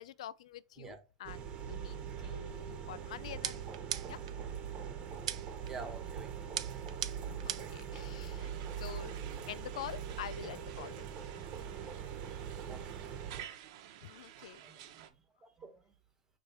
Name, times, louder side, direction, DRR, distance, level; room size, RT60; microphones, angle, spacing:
voice 1, 0.0-3.6 4.1-4.2 7.3-9.2 9.5-11.1 14.0-14.6, left 11 dB, 80° left, 0.4 m, -46 dB
sound 1, 1.2-13.4, right 8 dB, 30° right, 1.2 m, -42 dB
sound 2, 3.4-4.4 5.3-5.7 6.6-7.8, right 11 dB, 80° right, 0.7 m, -39 dB
voice 2, 5.7-6.3 6.7-6.8 12.7-12.9 14.6-15.1 15.4-15.9, right 4 dB, 15° right, 1.3 m, -48 dB
sound 3, 8.4-15.1, right 11 dB, 60° right, 1.0 m, -52 dB
6.8 x 3.1 x 4.6 m
supercardioid pair, 140°, 3 cm